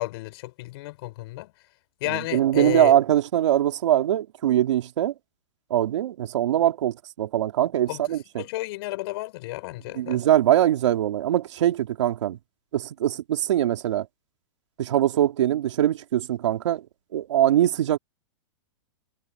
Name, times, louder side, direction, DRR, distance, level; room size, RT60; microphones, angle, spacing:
voice 1, 0.0-1.5 2.0-2.9 7.9-8.1 8.4-10.2, left 19 dB, 55° left, 4.9 m, -32 dB
voice 2, 2.1-5.1 5.7-8.5 9.9-12.4 12.7-14.1 14.8-16.8 17.1-18.0, right 12 dB, 75° right, 3.4 m, -22 dB
hypercardioid pair, 135°, 15 cm